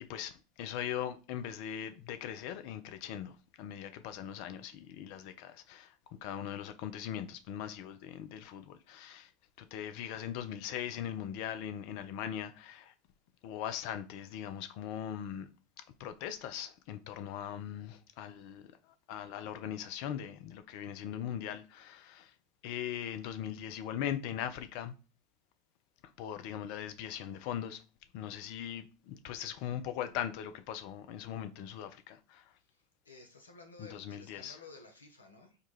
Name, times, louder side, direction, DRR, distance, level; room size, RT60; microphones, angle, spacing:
voice 1, 0.0-5.9 6.2-9.3 9.6-12.9 13.4-15.5 16.0-18.6 19.1-22.3 22.6-24.9 26.2-27.8 28.1-32.4 33.8-34.6, left 10 dB, 55° left, 0.5 m, -40 dB
voice 2, 33.0-35.6, left 3 dB, 85° left, 0.7 m, -53 dB
4.6 x 2.3 x 3.1 m
figure-of-eight pair, 80°, 0 cm